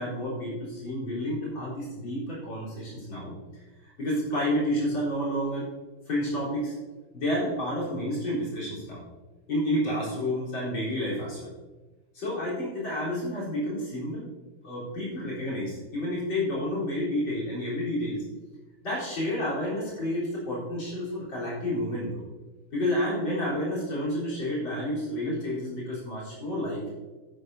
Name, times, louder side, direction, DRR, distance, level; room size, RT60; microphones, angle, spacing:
voice 1, 0.0-3.4 4.0-5.7 6.1-6.7 7.1-9.0 9.5-11.5 12.1-14.3 14.6-18.2 18.8-22.2 22.7-26.9, left 1 dB, 65° left, -7 dB, 4.9 m, -30 dB
12.5 x 11.0 x 2.8 m, 1.2 s
omnidirectional pair, 2.3 m